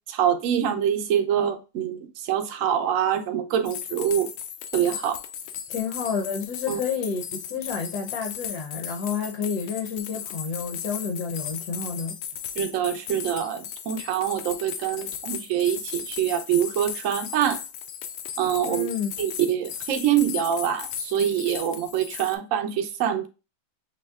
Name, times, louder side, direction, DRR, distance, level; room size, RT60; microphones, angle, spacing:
voice 1, 0.1-4.3 4.7-5.2 6.7-6.8 12.6-17.6 18.4-18.9 19.2-23.3, right 9 dB, 65° right, 0.8 m, -25 dB
sound 1, 3.6-22.3, left 9 dB, 80° left, 1.3 m, -36 dB
voice 2, 5.7-12.1 18.7-19.1, left 6 dB, 60° left, 1.2 m, -30 dB
6.3 x 3.2 x 2.3 m
omnidirectional pair, 2.1 m